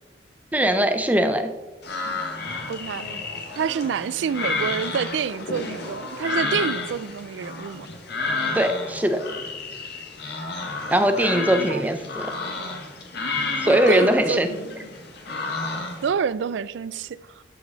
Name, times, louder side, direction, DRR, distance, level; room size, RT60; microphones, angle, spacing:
voice 1, 0.5-1.5 8.5-9.2 10.9-12.3 13.6-14.5, right 1 dB, 10° right, 0.6 m, -20 dB
sound 1, 1.8-16.1, left 3 dB, 60° left, 1.3 m, -31 dB
voice 2, 2.7-3.1 3.6-7.9 11.7-11.8 13.7-14.7 16.0-17.2, right 7 dB, 70° right, 0.3 m, -27 dB
12.0 x 5.0 x 4.0 m
head